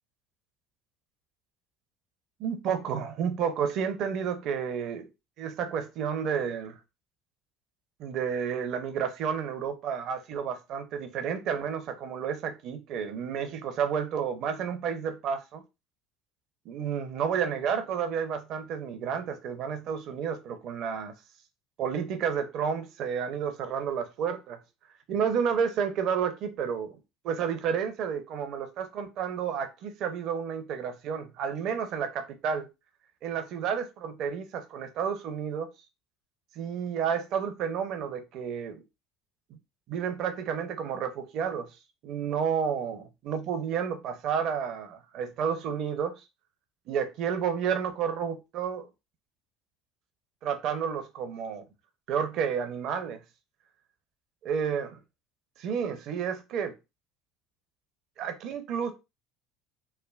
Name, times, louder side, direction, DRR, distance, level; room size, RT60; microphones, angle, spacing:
voice 1, 2.4-5.1 5.4-6.7 8.0-15.6 16.7-21.1 21.8-24.6 25.1-27.0 27.2-32.7 33.2-35.7 36.6-38.8 39.9-41.7 42.0-46.2 46.9-48.9 50.4-51.6 52.1-53.2 54.5-54.9 55.6-56.7 58.2-58.9, right 7 dB, 60° right, 0.6 m, -31 dB
3.3 x 2.1 x 2.3 m
hypercardioid pair, 75°, 0 cm